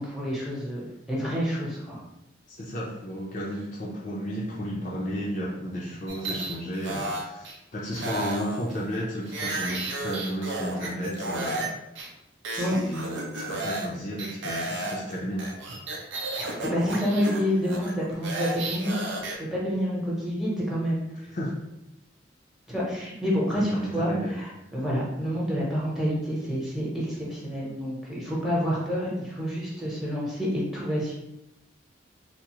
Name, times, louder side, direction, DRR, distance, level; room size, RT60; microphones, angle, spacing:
voice 1, 0.0-2.0 12.6-12.8 16.6-19.1 19.4-21.0 22.7-31.1, equal, ahead, -6 dB, 0.8 m, -28 dB
voice 2, 2.5-11.7 12.5-15.5 21.3-21.5 23.6-24.4, equal, 40° left, -4 dB, 0.4 m, -33 dB
sound 1, 6.1-7.6 7.9-11.7 12.0-12.1 12.4-13.9 14.2-19.4, right 2 dB, 90° right, 0.6 m, -33 dB
3.5 x 2.0 x 2.9 m, 0.89 s
head